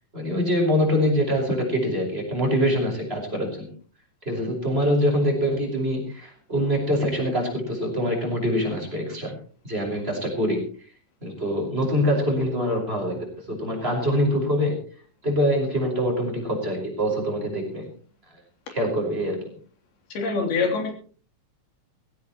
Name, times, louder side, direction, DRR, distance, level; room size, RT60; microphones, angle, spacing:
voice 1, 0.1-3.7 4.2-9.3 9.6-10.7 11.2-14.8 15.2-17.9 18.7-19.5, equal, 15° right, 0 dB, 5.3 m, -24 dB
voice 2, 20.1-20.9, left 4 dB, 90° left, 3 dB, 5.1 m, -24 dB
20.0 x 16.5 x 3.1 m, 0.41 s
omnidirectional pair, 4.3 m